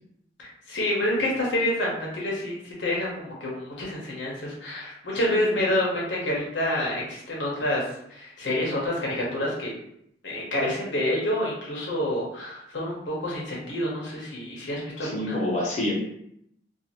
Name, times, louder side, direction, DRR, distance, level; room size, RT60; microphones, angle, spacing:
voice 1, 0.4-7.8 8.1-9.7 10.2-15.4, left 1 dB, 85° left, -4 dB, 0.8 m, -28 dB
voice 2, 5.2-5.6 15.0-15.9, left 1 dB, 40° left, -3 dB, 0.7 m, -28 dB
2.5 x 2.4 x 2.8 m, 0.74 s
head